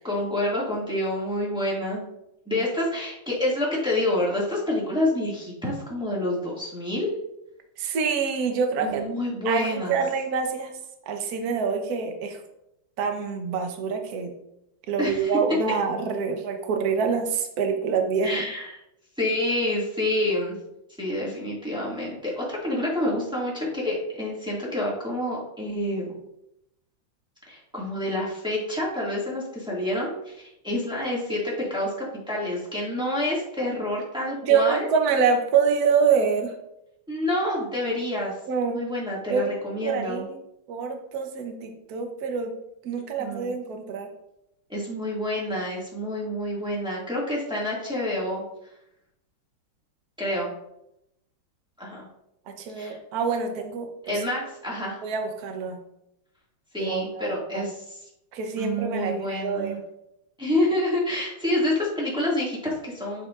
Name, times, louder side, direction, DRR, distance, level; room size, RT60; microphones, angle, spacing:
voice 1, 0.0-2.0 2.4-7.1 8.8-10.0 15.0-15.4 18.2-18.8 19.2-20.5 21.0-26.1 27.5-34.9 37.1-38.3 38.7-40.2 43.2-43.5 44.7-48.4 50.2-50.5 51.8-52.0 52.7-53.0 54.0-55.0 56.7-58.0 58.6-59.8 60.4-63.3, left 1 dB, ahead, -6 dB, 1.7 m, -28 dB
voice 2, 7.8-9.1 9.4-10.7 11.1-12.4 13.0-14.3 14.9-18.5 34.3-36.5 38.5-38.8 39.3-40.4 40.7-42.6 42.8-44.1 52.5-53.9 55.0-55.8 56.8-57.7 58.3-59.8, right 6 dB, 55° right, 5 dB, 1.2 m, -26 dB
9.0 x 6.7 x 2.4 m, 0.83 s
omnidirectional pair, 2.3 m